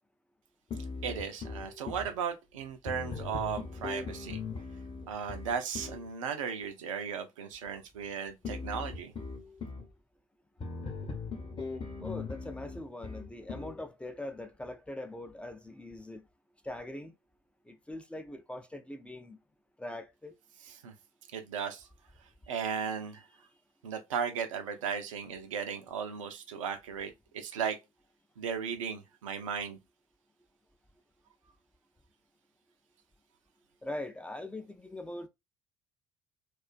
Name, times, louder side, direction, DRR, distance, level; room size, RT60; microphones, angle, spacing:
sound 1, 0.7-2.1 2.9-6.0 8.4-9.9 10.6-13.8, left 4 dB, 30° left, 0.9 m, -39 dB
voice 1, 1.0-4.4 5.1-9.1 20.6-20.9 21.3-21.9 22.5-23.3 23.8-27.8 28.4-29.8, right 7 dB, 80° right, 0.4 m, -36 dB
voice 2, 12.0-16.2 16.6-17.1 17.7-19.4 19.8-20.4 33.8-35.3, left 1 dB, 5° left, 0.3 m, -42 dB
2.4 x 2.3 x 2.4 m
hypercardioid pair, 60°, 16 cm